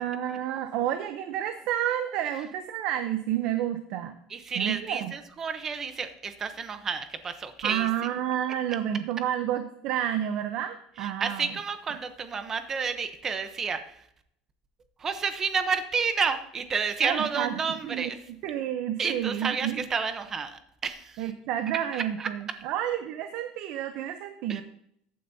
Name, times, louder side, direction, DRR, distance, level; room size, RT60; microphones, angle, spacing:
voice 1, 0.0-4.1 4.6-5.1 7.6-11.5 17.0-17.5 17.8-18.1 18.4-19.8 21.2-24.6, right 11 dB, 50° right, 9 dB, 0.7 m, -30 dB
voice 2, 4.3-7.9 11.0-14.0 15.0-18.2 19.0-21.3 21.9-22.3 24.5-24.6, right 5 dB, 20° right, 10 dB, 0.8 m, -30 dB
14.5 x 9.2 x 2.7 m, 0.71 s
cardioid pair, 175°, 2 cm